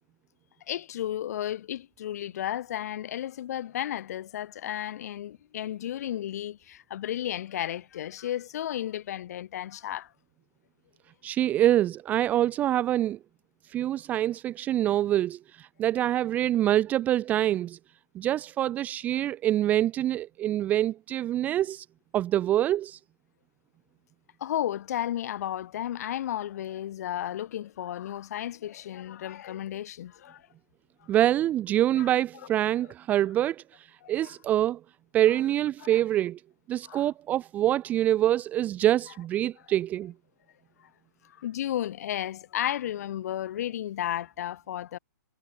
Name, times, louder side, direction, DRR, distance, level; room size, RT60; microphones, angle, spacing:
voice 1, 0.7-10.1 24.4-30.5 32.0-32.1 34.0-34.3 35.8-36.0 36.8-37.1 41.2-45.0, left 11 dB, 50° left, 6.0 m, -33 dB
voice 2, 11.2-13.2 13.7-17.8 18.1-21.9 22.1-23.0 31.1-33.6 34.1-34.8 35.1-36.4 36.7-40.1, right 12 dB, 15° right, 0.4 m, -25 dB
hypercardioid pair, 150°, 11 cm